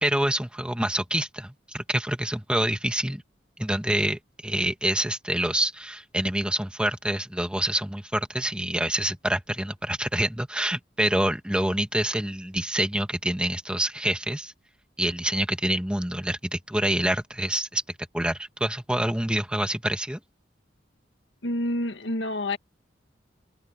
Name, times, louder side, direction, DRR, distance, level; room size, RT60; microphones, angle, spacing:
voice 1, 0.0-3.2 3.6-14.5 15.0-17.8 18.1-20.2, right 1 dB, 5° right, 2.0 m, -26 dB
voice 2, 21.4-22.6, left 1 dB, 80° left, 1.8 m, -28 dB
head